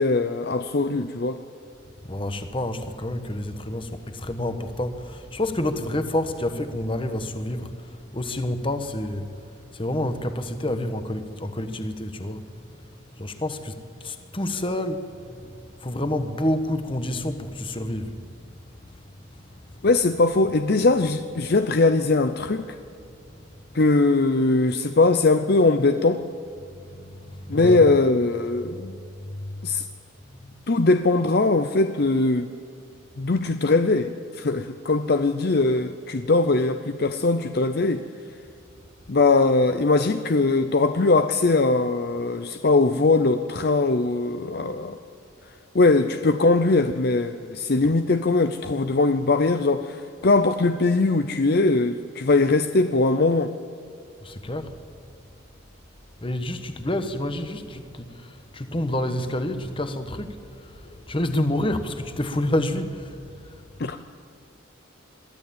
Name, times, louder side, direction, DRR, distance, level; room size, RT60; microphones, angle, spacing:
voice 1, 0.0-1.4 19.8-22.7 23.7-26.2 27.5-29.0 29.6-29.9 30.7-32.5 33.2-38.0 39.1-45.0 45.7-53.5 63.8-64.0, left 3 dB, 50° left, 9 dB, 0.6 m, -21 dB
voice 2, 2.1-9.3 9.7-12.4 13.2-18.2 26.7-27.8 29.2-29.6 30.4-30.5 47.8-47.9 54.2-54.7 56.2-63.2, left 1 dB, 25° left, 9 dB, 1.3 m, -29 dB
22.5 x 13.5 x 8.7 m, 2.4 s
head